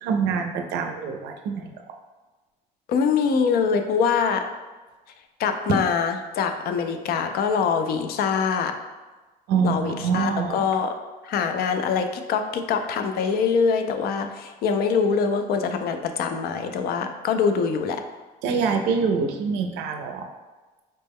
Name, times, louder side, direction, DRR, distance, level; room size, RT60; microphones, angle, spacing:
voice 1, 0.0-1.9 5.7-5.8 9.5-10.7 18.4-20.3, right 5 dB, 90° right, 4 dB, 0.4 m, -25 dB
voice 2, 2.9-4.4 5.4-8.7 9.6-10.9 11.2-18.0, left 6 dB, 65° left, 7 dB, 0.4 m, -24 dB
4.1 x 2.1 x 3.5 m, 1.2 s
cardioid pair, 110°, 17 cm